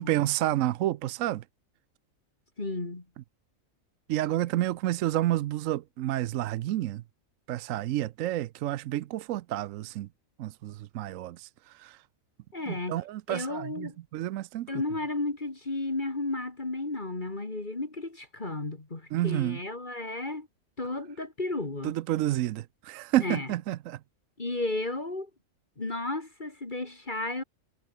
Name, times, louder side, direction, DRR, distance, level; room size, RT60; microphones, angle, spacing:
voice 1, 0.0-1.4 4.1-7.0 7.5-10.1 10.4-11.5 11.8-12.0 12.7-14.7 19.1-19.6 21.8-24.0, right 14 dB, 75° right, 0.9 m, -29 dB
voice 2, 2.6-3.0 12.5-13.0 13.3-14.0 14.7-20.5 20.8-21.9 23.2-23.5 24.4-25.3 25.8-27.4, left 2 dB, 35° left, 2.6 m, -33 dB
omnidirectional pair, 1.4 m